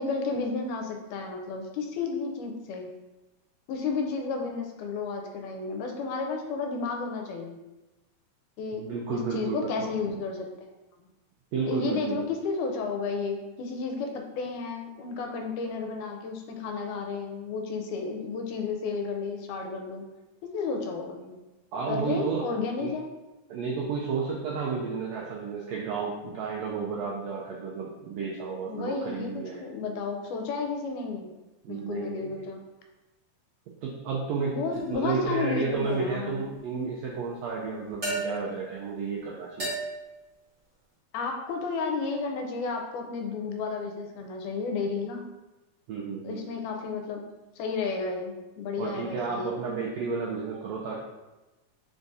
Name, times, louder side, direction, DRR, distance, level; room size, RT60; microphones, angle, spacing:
voice 1, 0.0-2.9 3.7-7.6 8.6-8.9 9.1-10.5 11.7-20.0 20.4-21.4 21.9-23.1 28.7-31.3 31.7-32.6 34.5-36.5 41.1-45.3 46.2-47.2 47.6-49.6, left 4 dB, 85° left, 3 dB, 2.1 m, -32 dB
voice 2, 8.7-9.7 11.5-12.3 21.7-22.5 22.8-22.9 23.5-29.6 31.6-32.4 33.8-39.7 45.9-46.5 48.8-51.0, right 5 dB, 85° right, -3 dB, 1.5 m, -32 dB
sound 1, 34.7-35.1 38.0-38.6 39.6-40.2, right 2 dB, 50° right, 0.8 m, -33 dB
5.0 x 2.7 x 3.5 m, 1.1 s
omnidirectional pair, 3.6 m